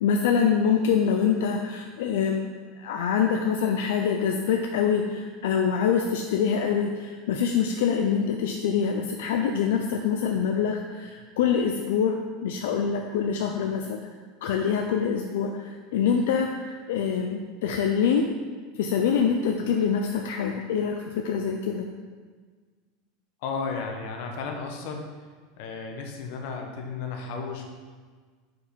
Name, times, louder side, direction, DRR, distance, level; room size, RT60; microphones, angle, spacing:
voice 1, 0.0-14.0 14.4-18.3 18.8-21.9, left 7 dB, 75° left, 3 dB, 0.4 m, -25 dB
voice 2, 23.4-25.1 25.6-27.7, left 4 dB, 55° left, 2 dB, 0.9 m, -33 dB
4.8 x 4.7 x 5.2 m, 1.5 s
supercardioid pair, 175°, 0 cm